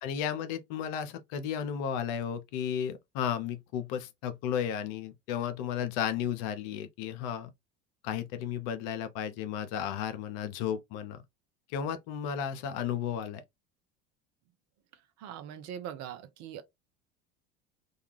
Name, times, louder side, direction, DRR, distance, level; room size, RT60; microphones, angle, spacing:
voice 1, 0.0-7.5 8.0-11.2 11.7-13.4, left 9 dB, 60° left, 0.6 m, -33 dB
voice 2, 15.2-16.6, right 9 dB, 50° right, 0.6 m, -41 dB
2.3 x 2.3 x 3.0 m
hypercardioid pair, 70°, 35 cm